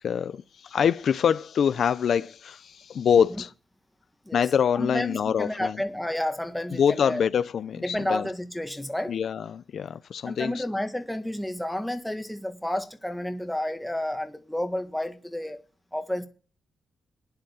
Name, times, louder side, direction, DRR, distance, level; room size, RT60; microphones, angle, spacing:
voice 1, 0.0-3.5 4.3-5.8 6.7-8.3 9.1-10.6, left 7 dB, 60° left, 0.6 m, -25 dB
voice 2, 4.7-7.2 7.8-9.2 10.2-15.6 15.9-16.3, left 1 dB, 5° left, 1.6 m, -31 dB
11.5 x 10.5 x 7.1 m
cardioid pair, 125°, 0 cm